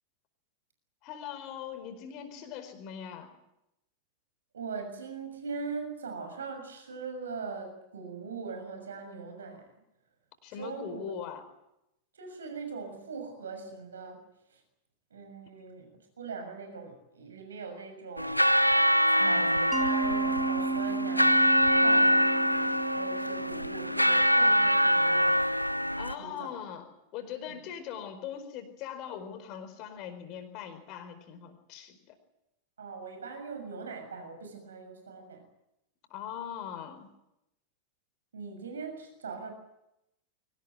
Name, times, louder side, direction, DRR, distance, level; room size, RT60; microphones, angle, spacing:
voice 1, 1.0-3.3 10.4-11.4 19.2-19.5 26.0-26.9 27.1-32.1 36.1-37.1, left 8 dB, 40° left, 8 dB, 4.6 m, -41 dB
voice 2, 4.5-9.7 10.6-11.0 12.1-14.2 14.5-14.6 15.1-15.9 16.2-18.5 19.1-21.5 21.8-22.2 22.9-25.4 26.2-26.5 27.6-27.7 32.8-35.4 38.3-39.5, right 5 dB, 70° right, 6 dB, 6.7 m, -41 dB
sound 1, 18.2-26.1, equal, 90° left, 0.8 m, -24 dB
Mallet percussion, 19.7-24.5, right 4 dB, 5° right, 1.6 m, -34 dB
23.5 x 19.0 x 9.4 m, 0.87 s
figure-of-eight pair, 90°, 0 cm